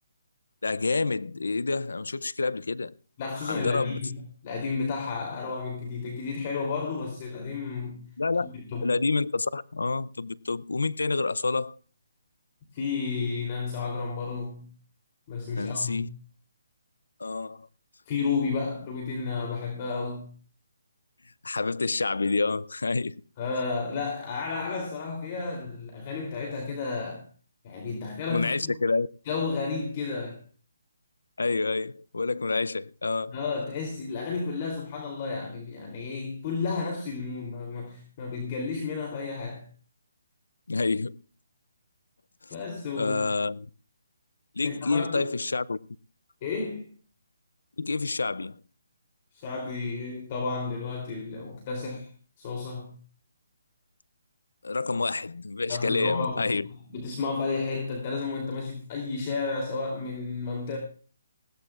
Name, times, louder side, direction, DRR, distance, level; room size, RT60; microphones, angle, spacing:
voice 1, 0.6-2.9 3.4-4.0 8.2-8.5 8.8-11.8 15.6-16.1 17.2-17.7 21.4-23.2 28.3-29.1 31.4-33.4 40.7-41.2 42.4-42.5 42.9-43.7 44.6-45.8 47.8-48.6 54.6-56.7, left 3 dB, 85° left, 0.5 m, -28 dB
voice 2, 3.2-8.0 8.4-8.9 12.7-14.7 15.3-16.1 18.1-20.3 23.4-27.2 27.6-28.7 29.3-30.4 33.3-39.7 42.5-43.3 44.6-45.3 46.4-46.9 49.3-52.1 52.4-52.9 55.7-56.5 56.9-60.8, left 4 dB, 35° left, 3.1 m, -32 dB
20.5 x 16.5 x 2.4 m
hypercardioid pair, 155°, 0 cm